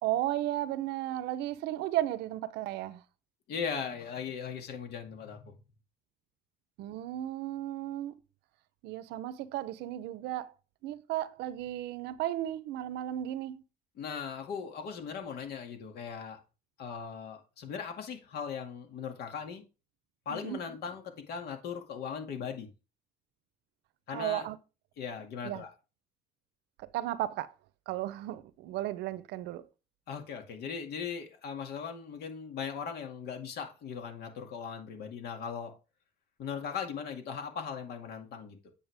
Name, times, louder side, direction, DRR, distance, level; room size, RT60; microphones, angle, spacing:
voice 1, 0.0-3.0 6.8-8.2 8.8-10.5 10.8-13.6 20.3-20.6 24.1-24.6 25.4-25.6 26.8-27.5 27.9-29.7, right 14 dB, 85° right, 0.7 m, -34 dB
voice 2, 3.5-5.6 14.0-16.4 16.8-19.6 20.3-22.7 24.1-24.5 25.0-25.7 30.1-35.7 36.4-38.7, left 6 dB, 70° left, 2.2 m, -39 dB
9.0 x 6.7 x 3.4 m
cardioid pair, 110°, 17 cm